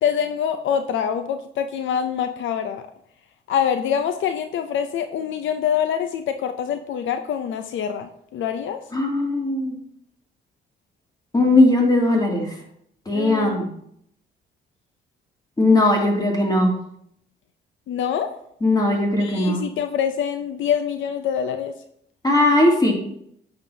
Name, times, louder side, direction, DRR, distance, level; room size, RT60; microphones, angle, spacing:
voice 1, 0.0-2.9 3.5-8.8 13.1-13.7 17.9-18.4 19.2-21.7, left 8 dB, 75° left, 8 dB, 0.6 m, -25 dB
voice 2, 8.9-9.8 11.3-12.5 13.1-13.7 15.6-16.7 18.6-19.6 22.2-22.9, left 2 dB, 20° left, 0 dB, 2.5 m, -18 dB
9.1 x 7.0 x 2.8 m, 0.71 s
cardioid pair, 90°, 20 cm